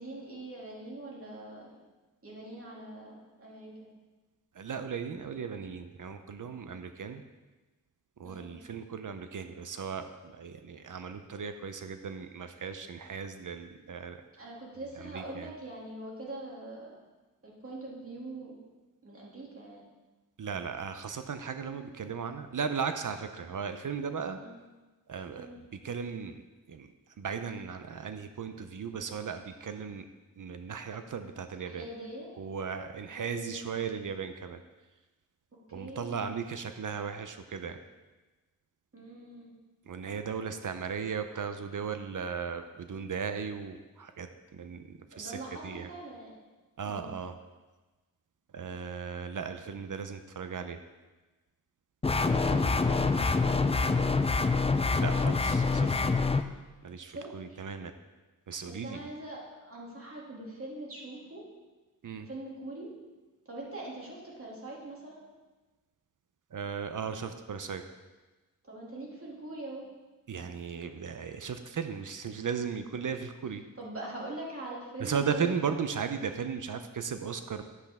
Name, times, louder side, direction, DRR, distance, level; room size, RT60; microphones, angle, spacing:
voice 1, 0.0-1.7 2.2-3.9 8.2-8.6 14.4-16.9 17.4-18.6 19.0-19.9 24.4-24.6 25.4-25.6 31.7-32.3 33.2-33.7 35.7-36.3 38.9-39.6 45.1-46.3 46.8-47.2 52.1-54.0 57.1-57.6 58.7-61.4 62.3-62.9 63.5-65.2 68.7-69.8 73.8-75.8, right 2 dB, 40° right, -4 dB, 2.5 m, -43 dB
voice 2, 4.5-7.2 8.2-14.4 15.0-15.5 20.4-24.4 25.1-25.5 25.8-26.4 26.7-26.9 27.2-30.1 30.4-31.9 32.4-34.6 35.7-37.8 39.9-45.9 46.8-47.4 48.5-50.8 52.4-52.5 54.9-56.2 56.8-57.9 58.5-59.0 62.0-62.3 66.5-67.8 70.3-73.6 75.0-77.6, right 6 dB, 65° right, 8 dB, 0.6 m, -36 dB
sound 1, 52.0-56.4, left 4 dB, 20° left, 0.3 m, -26 dB
10.5 x 7.8 x 3.5 m, 1.2 s
wide cardioid pair, 115°, 34 cm